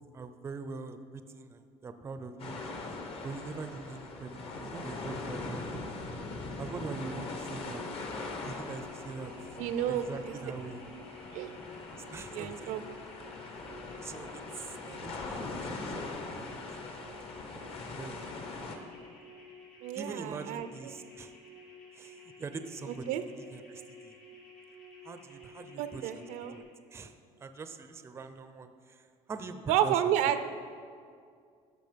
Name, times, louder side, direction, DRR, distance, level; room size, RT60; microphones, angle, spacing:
voice 1, 0.1-2.5 3.2-5.8 6.6-7.8 8.4-9.3 9.9-10.8 12.1-12.9 14.0-15.5 15.8-16.7 17.1-17.2 17.5-17.7 18.0-18.2 18.5-18.7 19.9-21.3 22.0-24.2 25.0-26.2 26.5-26.6 26.9-30.0, right 4 dB, 20° right, 9 dB, 0.5 m, -43 dB
sound 1, 2.4-18.8, left 3 dB, 50° left, 1.2 m, -41 dB
sound 2, 6.9-26.6, left 2 dB, 80° left, 2.3 m, -52 dB
voice 2, 9.6-10.3 11.3-11.5 12.3-13.0 19.8-21.0 23.1-23.2 25.8-26.5 29.7-30.5, right 10 dB, 80° right, 10 dB, 0.6 m, -31 dB
12.0 x 6.3 x 5.1 m, 2.2 s
cardioid pair, 140°, 13 cm